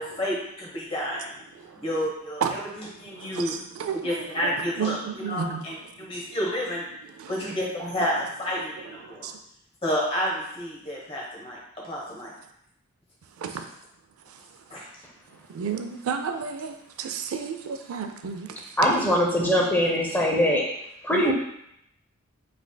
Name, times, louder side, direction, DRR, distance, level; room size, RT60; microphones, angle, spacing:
voice 1, 0.0-1.3 1.8-3.5 4.0-6.9 7.3-9.3 9.8-11.6 11.8-12.3 14.7-14.8, equal, 25° left, -4 dB, 1.0 m, -30 dB
voice 2, 3.2-5.7 6.1-6.4 7.2-7.6 9.0-9.4 13.4-13.7 14.3-14.4 15.5-18.7 21.1-21.3, right 6 dB, 80° right, 7 dB, 0.4 m, -32 dB
voice 3, 18.8-20.6 21.0-21.3, equal, 10° left, -2 dB, 0.5 m, -22 dB
4.9 x 3.4 x 2.2 m, 0.77 s
head